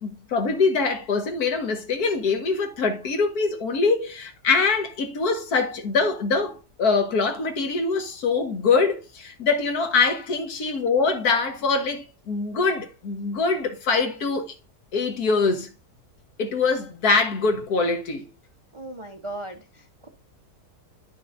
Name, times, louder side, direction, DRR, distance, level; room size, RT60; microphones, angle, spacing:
voice 1, 0.0-14.5 14.9-15.7 16.4-18.3, left 4 dB, 65° left, 1.7 m, -23 dB
voice 2, 18.7-20.1, right 1 dB, 35° right, 0.5 m, -37 dB
10.5 x 6.0 x 2.5 m
omnidirectional pair, 1.8 m